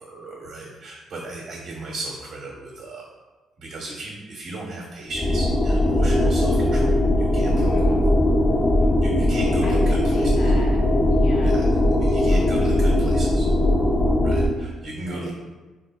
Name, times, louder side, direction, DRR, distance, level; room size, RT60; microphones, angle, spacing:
voice 1, 0.0-3.0 3.6-8.0 9.0-10.3 11.4-11.7 11.9-13.5 14.2-15.3, right 2 dB, 65° right, -4 dB, 0.8 m, -36 dB
sound 1, 5.1-14.5, left 1 dB, 30° left, 0.4 m, -19 dB
voice 2, 7.5-8.0 9.6-11.6 15.0-15.3, left 1 dB, 80° left, -3 dB, 0.7 m, -37 dB
3.3 x 2.4 x 2.3 m, 1.2 s
supercardioid pair, 65°, 0 cm